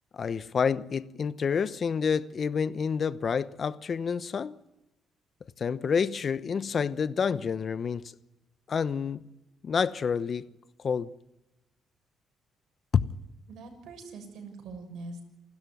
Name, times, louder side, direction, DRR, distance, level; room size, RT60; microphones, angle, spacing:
voice 1, 0.1-4.5 5.6-8.1 8.7-9.2 9.6-10.5 10.8-11.1 12.9-13.0, left 6 dB, 45° left, 0.9 m, -28 dB
voice 2, 13.5-15.2, right 3 dB, 80° right, 6.9 m, -43 dB
28.5 x 13.0 x 9.4 m
cardioid pair, 90°, 0 cm